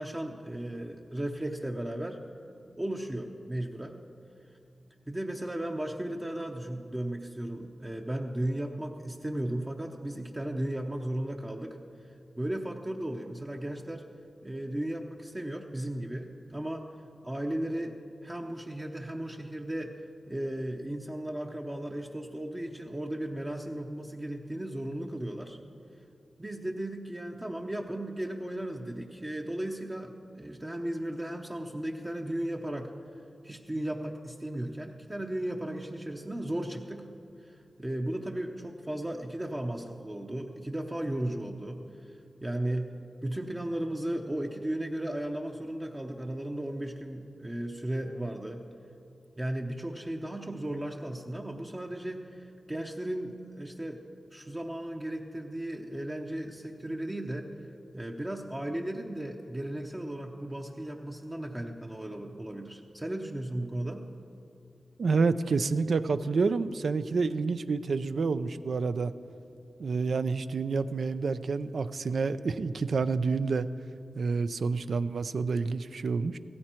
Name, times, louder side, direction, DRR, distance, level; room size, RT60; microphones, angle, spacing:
voice 1, 0.0-2.2 2.8-4.0 5.1-11.8 12.4-14.0 14.4-16.8 17.2-18.0 18.2-20.0 20.3-25.6 26.4-32.9 33.4-37.1 37.4-41.8 42.4-42.9 43.2-48.6 49.4-54.0 54.3-57.5 57.9-64.1, right 1 dB, 15° right, 1 dB, 0.7 m, -35 dB
voice 2, 65.0-69.1 69.8-73.7 74.2-76.4, right 4 dB, 70° right, 12 dB, 0.4 m, -28 dB
16.0 x 14.0 x 4.4 m, 2.6 s
wide cardioid pair, 110°, 0 cm